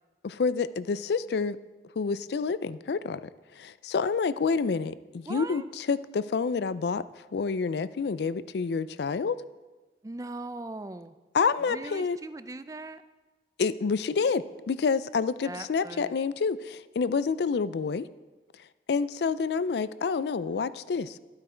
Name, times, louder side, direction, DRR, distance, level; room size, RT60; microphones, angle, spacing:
voice 1, 0.2-1.6 2.0-3.2 3.5-7.0 7.3-9.4 11.3-12.2 13.6-18.1 18.9-21.2, left 5 dB, 75° left, 16 dB, 0.4 m, -28 dB
voice 2, 5.3-5.6 10.0-11.1 11.7-13.0 15.4-16.2, right 2 dB, 20° right, 12 dB, 0.4 m, -39 dB
13.0 x 8.7 x 4.4 m, 1.2 s
head